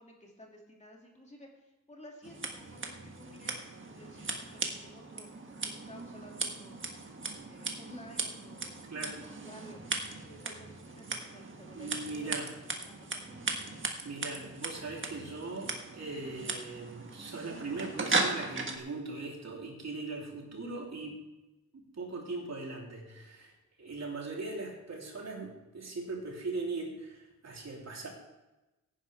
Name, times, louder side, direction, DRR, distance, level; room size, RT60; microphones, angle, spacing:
voice 1, 0.0-3.6 3.9-7.2 7.4-8.8 9.3-11.9 12.2-13.8, left 1 dB, 20° left, -1 dB, 2.5 m, -54 dB
Scissors, 2.2-18.8, right 3 dB, 40° right, 1.5 m, -38 dB
voice 2, 11.7-12.5 14.0-21.2 21.7-23.5 23.8-28.1, right 3 dB, 60° right, -1 dB, 3.4 m, -40 dB
17.0 x 10.5 x 3.5 m, 1.0 s
wide cardioid pair, 135°, 31 cm